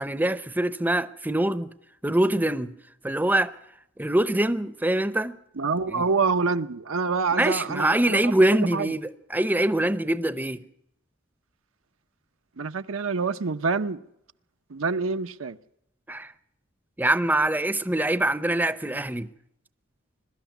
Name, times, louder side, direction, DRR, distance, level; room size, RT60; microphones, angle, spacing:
voice 1, 0.0-1.7 2.0-2.7 3.0-3.5 4.0-5.4 5.9-6.0 7.4-10.6 16.1-16.3 17.0-19.3, right 1 dB, 10° right, 0.7 m, -24 dB
voice 2, 5.6-9.0 12.6-14.0 14.7-15.6, right 4 dB, 80° right, 0.8 m, -26 dB
22.5 x 13.0 x 9.1 m
head